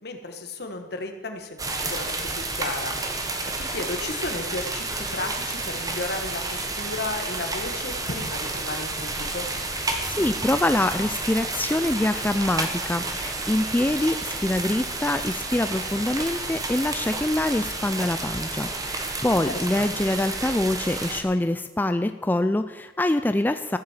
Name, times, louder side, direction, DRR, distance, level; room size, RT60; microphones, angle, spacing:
voice 1, 0.0-3.0 3.7-9.5 19.3-19.9, left 2 dB, 65° left, 5 dB, 1.7 m, -34 dB
sound 1, 1.4-17.7, right 1 dB, 55° right, 2.5 m, -44 dB
sound 2, 1.6-21.2, right 2 dB, 20° right, 1.4 m, -31 dB
voice 2, 9.7-23.8, left 1 dB, 10° left, 9 dB, 0.4 m, -25 dB
15.0 x 7.7 x 7.5 m, 1.3 s
head